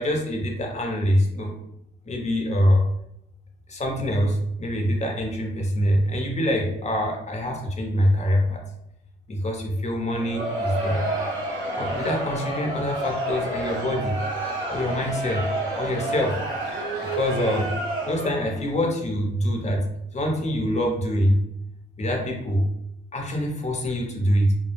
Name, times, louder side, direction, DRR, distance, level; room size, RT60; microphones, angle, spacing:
voice 1, 0.0-1.5 2.0-2.8 3.7-8.6 9.3-11.0 11.7-14.1 14.7-15.5 15.8-16.4 17.0-17.7 18.0-19.8 20.1-21.4 22.0-22.7 23.1-24.5, equal, 35° left, 1 dB, 0.8 m, -24 dB
Crowd, 10.1-18.6, right 1 dB, 85° right, 0.8 m, -29 dB
2.1 x 2.1 x 3.1 m, 0.81 s
supercardioid pair, 70°, 21 cm